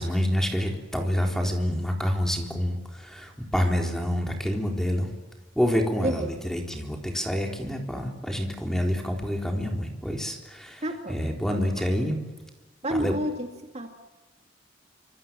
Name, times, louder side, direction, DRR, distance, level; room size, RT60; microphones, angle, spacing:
voice 1, 0.0-5.1 5.6-10.8 11.1-12.2 12.9-13.2, equal, 5° left, 2 dB, 3.9 m, -27 dB
voice 2, 6.0-6.4 10.8-11.2 11.5-11.6 12.8-13.5 13.7-13.9, right 1 dB, 35° right, 4 dB, 2.1 m, -29 dB
27.5 x 26.0 x 7.6 m, 1.2 s
head